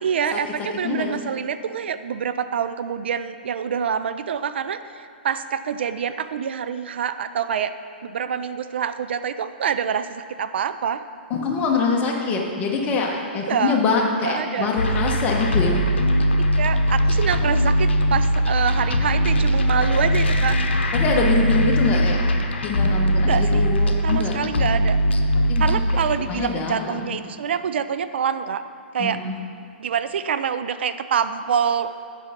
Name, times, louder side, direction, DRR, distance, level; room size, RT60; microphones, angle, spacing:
voice 1, 0.0-7.7 8.0-11.0 13.5-13.8 14.2-14.7 16.6-20.6 23.3-23.7 24.0-25.0 25.6-28.6 28.9-29.2 29.8-32.1, right 7 dB, 70° right, 12 dB, 0.4 m, -26 dB
voice 2, 0.8-1.1 11.3-15.8 20.9-22.2 22.6-24.4 25.5-25.8 26.3-27.2 29.0-29.3, left 4 dB, 25° left, 0 dB, 1.2 m, -24 dB
sound 1, 14.8-26.2, equal, 90° left, 0.8 m, -20 dB
8.2 x 5.5 x 5.1 m, 2.3 s
hypercardioid pair, 135°, 6 cm